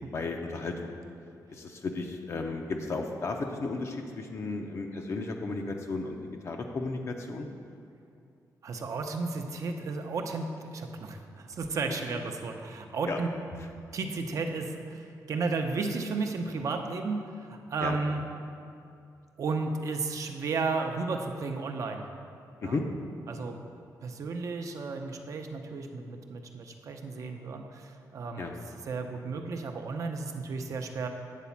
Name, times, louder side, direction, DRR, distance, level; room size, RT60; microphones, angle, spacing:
voice 1, 0.1-0.9 1.5-6.2 6.4-7.5 13.1-13.2 17.8-18.0 22.6-22.8 28.4-28.5, left 3 dB, 45° left, 3 dB, 0.6 m, -34 dB
voice 2, 8.6-13.3 13.9-18.2 19.4-22.0 22.6-22.8 23.3-23.6 24.0-28.6 28.9-31.1, right 4 dB, 55° right, 4 dB, 0.6 m, -33 dB
8.3 x 4.1 x 7.1 m, 2.4 s
wide cardioid pair, 160°, 7 cm